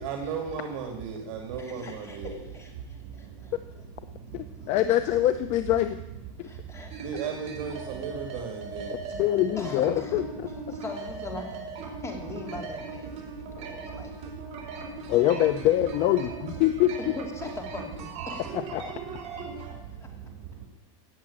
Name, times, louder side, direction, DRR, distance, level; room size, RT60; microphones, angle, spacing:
voice 1, 0.0-2.3 2.8-5.1 5.6-5.9 6.2-9.8 10.3-10.8 11.3-15.2 16.2-16.6 18.8-20.7, right 6 dB, 65° right, 3 dB, 2.5 m, -39 dB
voice 2, 1.6-3.5 4.6-4.7 6.4-7.3 9.6-10.2 10.7-14.1 17.1-18.4 20.0-20.1, left 3 dB, 15° left, 3 dB, 2.8 m, -41 dB
voice 3, 4.3-6.0 9.2-10.2 15.1-16.9 18.5-18.9, left 13 dB, 40° left, 11 dB, 0.7 m, -24 dB
sound 1, 6.9-19.7, right 4 dB, 40° right, 3.9 m, -39 dB
17.5 x 7.3 x 8.8 m, 0.94 s
supercardioid pair, 155°, 17 cm